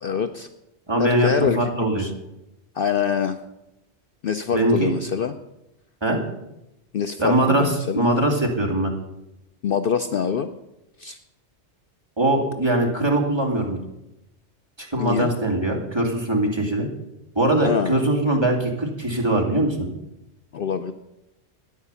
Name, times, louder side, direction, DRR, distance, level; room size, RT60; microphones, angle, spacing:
voice 1, 0.0-0.5 1.0-1.6 1.9-2.1 2.7-3.4 4.2-5.3 6.9-8.1 9.6-10.5 11.0-11.2 15.0-15.3 17.6-17.9 20.5-20.9, left 7 dB, 55° left, 8 dB, 0.8 m, -24 dB
voice 2, 0.9-2.1 4.5-4.9 6.0-6.2 7.2-8.9 12.2-13.8 14.8-16.9 17.4-19.9, right 1 dB, 20° right, 0 dB, 2.7 m, -21 dB
13.0 x 10.0 x 6.9 m, 0.89 s
omnidirectional pair, 1.2 m